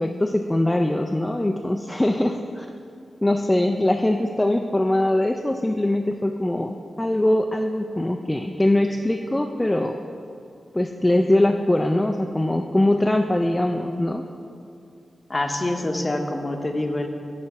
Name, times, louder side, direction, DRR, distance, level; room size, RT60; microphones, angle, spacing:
voice 1, 0.0-2.7 3.2-10.0 10.7-14.3, left 1 dB, 15° left, 4 dB, 0.3 m, -22 dB
voice 2, 15.3-17.1, left 1 dB, 30° left, 4 dB, 0.7 m, -26 dB
8.9 x 3.1 x 5.6 m, 2.5 s
cardioid pair, 55°, 0 cm